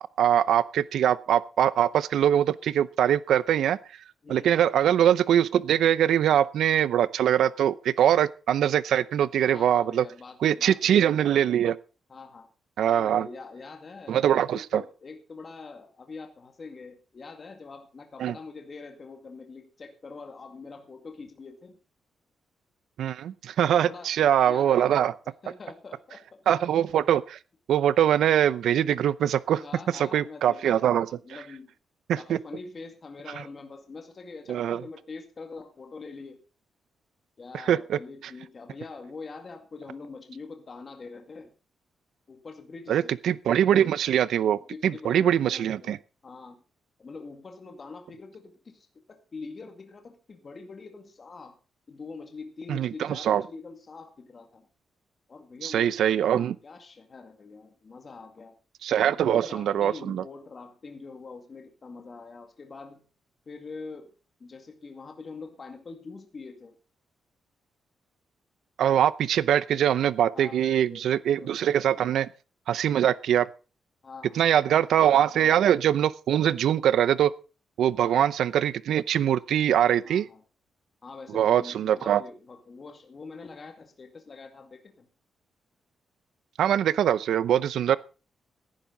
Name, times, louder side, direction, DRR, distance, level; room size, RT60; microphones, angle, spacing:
voice 1, 0.2-3.8 4.3-10.1 10.4-11.8 12.8-13.3 14.1-14.8 18.2-18.3 23.0-25.1 26.5-27.4 27.7-29.6 29.9-31.1 32.1-32.4 34.5-34.8 37.7-38.0 42.9-46.0 52.7-53.4 55.6-56.5 58.8-60.2 68.8-72.3 72.7-73.5 74.3-77.3 77.8-80.3 81.3-82.2 86.6-88.0, right 10 dB, 80° right, 18 dB, 0.7 m, -23 dB
voice 2, 4.2-4.6 9.5-11.5 12.1-12.5 12.8-21.8 23.7-25.1 25.4-26.4 29.6-31.7 32.1-36.4 37.4-41.5 42.3-43.2 44.6-46.0 46.2-46.6 47.0-51.6 51.9-54.7 55.3-58.6 59.0-63.0 63.5-64.1 64.4-66.8 70.3-71.6 71.9-72.2 74.0-74.9 75.2-75.6 78.0-78.3 80.0-80.4 81.0-85.1 87.9-88.0, left 4 dB, 30° left, 5 dB, 2.1 m, -44 dB
17.5 x 10.5 x 4.0 m, 0.34 s
wide cardioid pair, 160°, 0 cm